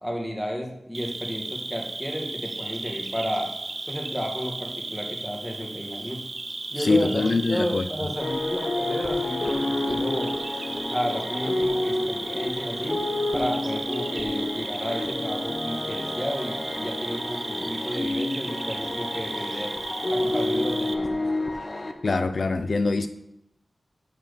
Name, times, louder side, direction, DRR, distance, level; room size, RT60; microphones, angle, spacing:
voice 1, 0.0-3.5 3.9-6.2 6.7-10.4 10.9-13.0 13.3-19.7 20.1-21.1, equal, ahead, 0 dB, 1.5 m, -32 dB
Cricket, 0.9-20.9, right 3 dB, 50° right, 0.6 m, -35 dB
voice 2, 6.8-7.8 22.0-23.1, left 3 dB, 60° left, 10 dB, 0.4 m, -23 dB
sound 1, 8.2-21.9, left 2 dB, 35° left, 0.8 m, -29 dB
6.6 x 5.9 x 6.6 m, 0.84 s
wide cardioid pair, 105°, 0 cm